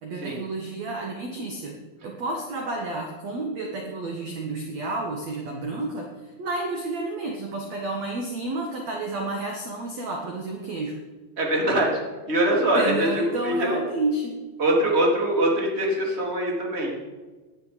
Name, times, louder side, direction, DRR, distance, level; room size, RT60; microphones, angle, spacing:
voice 1, 0.0-1.8 2.0-6.1 6.4-10.9 12.7-14.4, right 2 dB, 60° right, 1 dB, 1.8 m, -30 dB
voice 2, 11.4-12.0 12.3-13.7 14.6-17.0, right 1 dB, 20° right, -1 dB, 2.3 m, -23 dB
17.5 x 11.0 x 5.1 m, 1.3 s
omnidirectional pair, 5.4 m